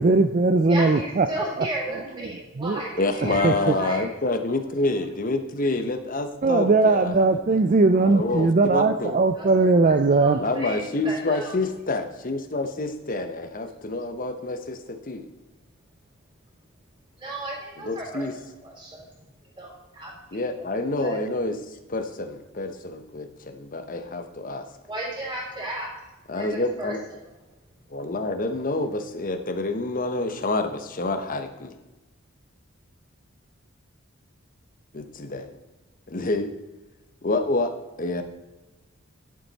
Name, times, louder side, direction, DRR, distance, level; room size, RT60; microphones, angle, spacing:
voice 1, 0.0-1.3 1.6-1.7 2.3-2.8 3.2-3.7 6.4-10.4, right 3 dB, 40° right, 8 dB, 0.4 m, -20 dB
voice 2, 0.7-4.0 9.3-10.8 11.0-11.5 17.2-18.2 18.6-19.0 19.6-20.4 21.0-21.2 24.9-25.9 26.4-26.9, right 1 dB, 25° right, -3 dB, 3.6 m, -34 dB
voice 3, 3.0-7.4 7.9-9.1 10.4-15.3 17.8-18.3 20.3-24.7 26.3-27.0 27.9-31.7 34.9-35.5 36.1-36.5 37.2-37.7 38.0-38.2, left 2 dB, 40° left, 7 dB, 1.0 m, -28 dB
11.5 x 7.5 x 4.1 m, 1.1 s
head